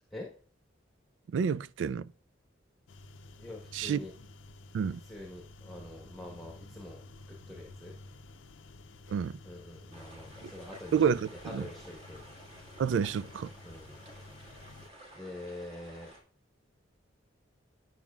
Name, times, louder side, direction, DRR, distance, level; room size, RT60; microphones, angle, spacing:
voice 1, 1.3-2.1 3.7-4.0 4.7-5.0 9.1-9.3 10.9-11.6 12.8-13.5, right 7 dB, 70° right, 0.3 m, -29 dB
sound 1, 2.9-14.9, left 2 dB, 85° left, 0.6 m, -52 dB
voice 2, 3.4-4.1 5.0-7.9 9.4-12.3 13.6-13.9 14.4-14.6 15.1-16.1, left 1 dB, ahead, 1.2 m, -45 dB
sound 2, 9.9-16.2, right 1 dB, 35° right, 1.8 m, -53 dB
8.9 x 6.1 x 2.4 m
head